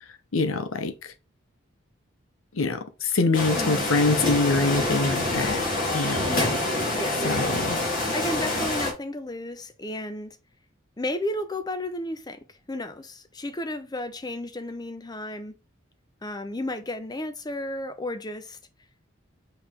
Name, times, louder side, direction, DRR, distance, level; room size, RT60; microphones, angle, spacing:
voice 1, 0.3-1.1 2.5-5.7 5.9-6.4 7.2-7.8, left 3 dB, 80° left, 0.8 m, -25 dB
sound 1, 3.3-8.9, left 2 dB, 40° left, 2.1 m, -26 dB
voice 2, 3.5-3.9 6.3-6.6 6.9-7.2 8.1-10.4 11.0-15.6 16.2-18.6, left 1 dB, 20° left, 0.6 m, -33 dB
5.5 x 4.7 x 3.6 m
head